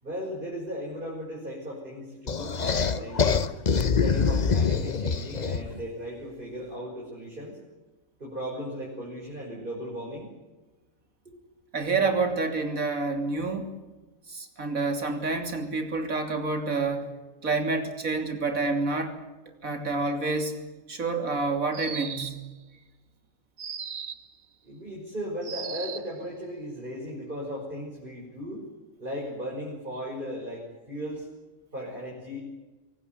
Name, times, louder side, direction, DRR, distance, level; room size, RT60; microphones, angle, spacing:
voice 1, 0.0-3.5 4.0-7.6 8.2-10.3 11.2-11.4 24.6-28.6 29.0-31.3 31.7-32.4, equal, 40° right, -3 dB, 6.1 m, -36 dB
sound 1, 2.3-5.8, left 5 dB, 35° left, 0.9 m, -25 dB
voice 2, 11.7-13.7 14.3-17.1 17.4-19.2 19.5-20.6 20.9-22.4, right 3 dB, 85° right, 6 dB, 3.4 m, -28 dB
sound 2, 21.7-22.5 23.6-24.3 25.4-26.2, right 7 dB, 60° right, 1.4 m, -37 dB
24.5 x 18.5 x 9.5 m, 1.2 s
omnidirectional pair, 1.4 m